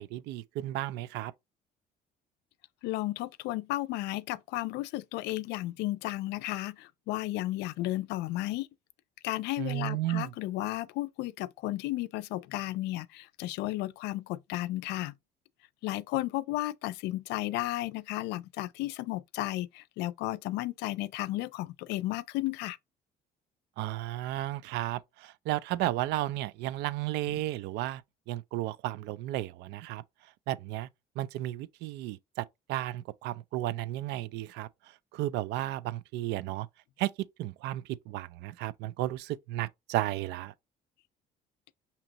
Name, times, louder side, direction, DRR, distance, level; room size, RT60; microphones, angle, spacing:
voice 1, 0.0-1.3 9.6-10.3 23.8-28.0 28.3-30.0 30.5-30.9 31.2-34.7 35.1-36.7 37.0-40.5, right 15 dB, 85° right, 0.4 m, -33 dB
voice 2, 2.8-8.7 9.2-15.2 15.8-22.8 27.3-27.4, left 17 dB, 85° left, 0.4 m, -33 dB
6.1 x 2.9 x 2.8 m
cardioid pair, 110°, 17 cm